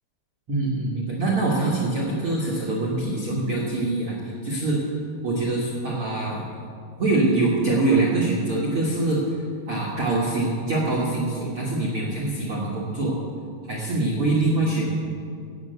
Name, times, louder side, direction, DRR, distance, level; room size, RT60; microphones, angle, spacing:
voice 1, 0.5-4.8 5.2-6.6 7.0-9.3 9.7-13.2 13.7-14.9, right 2 dB, 85° right, -3 dB, 1.2 m, -24 dB
16.5 x 6.7 x 8.0 m, 2.4 s
omnidirectional pair, 5.3 m